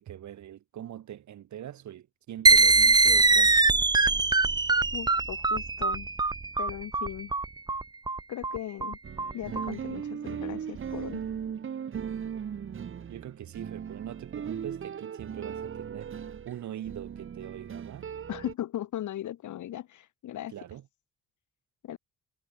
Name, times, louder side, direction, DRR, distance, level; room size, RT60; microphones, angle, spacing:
voice 1, 0.0-3.6 13.1-16.1 16.4-18.1 20.5-20.9, right 11 dB, 70° right, 4.4 m, -42 dB
sound 1, 2.5-9.7, right 3 dB, 15° right, 0.6 m, -22 dB
voice 2, 4.9-6.1 6.6-7.3 8.3-9.0 9.3-11.2 18.3-20.5 21.8-22.0, left 12 dB, 75° left, 3.7 m, -37 dB
sound 2, 9.0-18.5, right 8 dB, 45° right, 1.3 m, -38 dB
cardioid pair, 90°, 30 cm